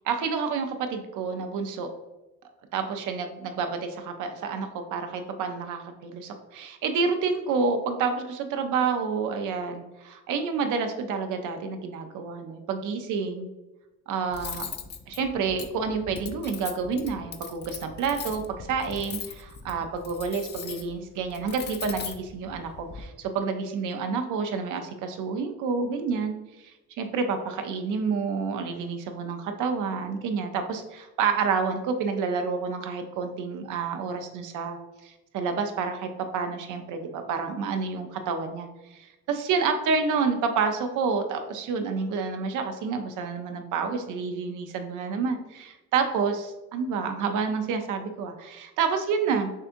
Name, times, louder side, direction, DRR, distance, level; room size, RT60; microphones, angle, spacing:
voice 1, 0.1-1.9 2.7-13.5 14.1-14.7 15.1-26.3 27.0-34.8 35.0-49.5, right 5 dB, 80° right, 6 dB, 0.6 m, -29 dB
Cutlery silverware, 14.3-23.0, left 6 dB, 35° left, 0.4 m, -40 dB
6.4 x 2.5 x 2.6 m, 1.0 s
cardioid pair, 90°, 30 cm